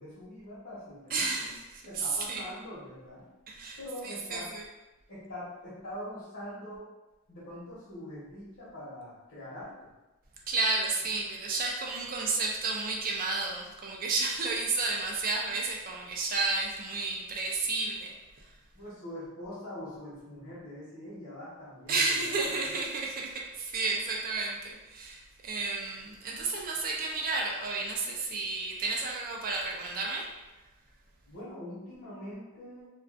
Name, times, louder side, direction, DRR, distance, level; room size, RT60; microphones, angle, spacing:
voice 1, 0.0-1.4 1.8-3.2 3.8-4.5 5.1-6.9 7.3-9.9 18.7-22.2 22.6-22.7 31.3-32.9, left 1 dB, 60° left, -11 dB, 1.0 m, -43 dB
voice 2, 1.1-2.4 3.5-3.8 4.0-4.6 10.5-18.5 21.9-30.3, right 3 dB, 40° right, -1 dB, 0.4 m, -32 dB
2.4 x 2.3 x 2.4 m, 1.1 s
head